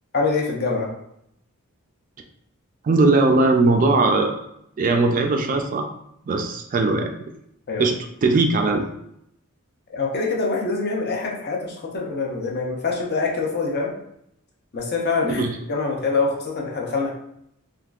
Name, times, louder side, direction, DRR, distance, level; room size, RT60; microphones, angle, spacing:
voice 1, 0.1-0.9 7.7-7.9 9.9-13.9 14.7-15.4 15.7-17.1, left 4 dB, 50° left, -1 dB, 0.6 m, -24 dB
voice 2, 2.8-4.4 4.8-5.9 6.3-7.1 7.8-8.0 8.2-8.9 15.2-15.5, right 3 dB, 40° right, 4 dB, 0.3 m, -19 dB
3.4 x 2.5 x 2.4 m, 0.75 s
head